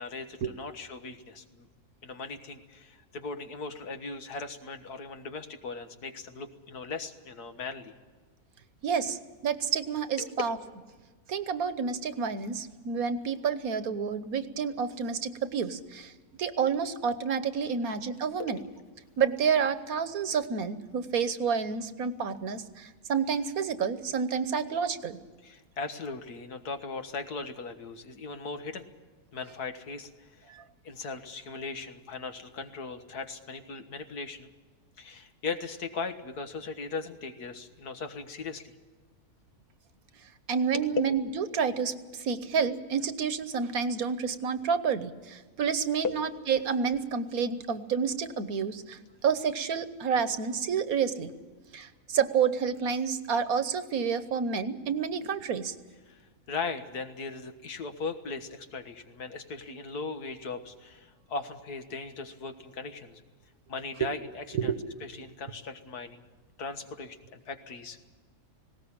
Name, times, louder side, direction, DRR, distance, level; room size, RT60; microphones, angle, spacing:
voice 1, 0.0-1.7 2.0-7.9 10.2-10.3 18.4-18.5 25.4-28.9 29.3-30.5 30.8-34.5 35.0-38.7 40.7-40.9 46.0-46.2 56.1-56.2 56.5-63.2 63.7-64.7 65.0-66.2 66.6-68.0, left 4 dB, 85° left, 7 dB, 2.0 m, -38 dB
voice 2, 8.8-10.6 11.3-16.1 16.4-18.6 19.2-25.2 30.5-30.6 40.5-51.3 51.7-55.7 64.5-64.8, right 6 dB, 70° right, 12 dB, 1.5 m, -29 dB
19.5 x 17.5 x 8.7 m, 1.3 s
omnidirectional pair, 1.6 m